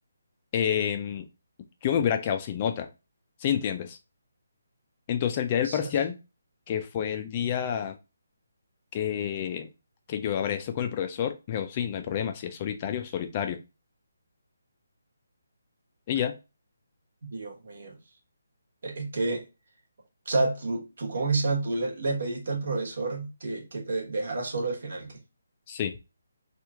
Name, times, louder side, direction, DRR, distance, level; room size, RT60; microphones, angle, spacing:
voice 1, 0.5-1.3 1.8-2.9 3.4-4.0 5.1-6.2 6.7-8.0 8.9-9.7 10.1-13.6 16.1-16.4 25.7-25.9, left 9 dB, 30° left, 0.4 m, -28 dB
voice 2, 5.6-5.9 17.2-17.9 18.8-19.4 20.2-25.2, right 3 dB, 65° right, 1.2 m, -30 dB
3.0 x 2.4 x 3.4 m
hypercardioid pair, 160°, 0 cm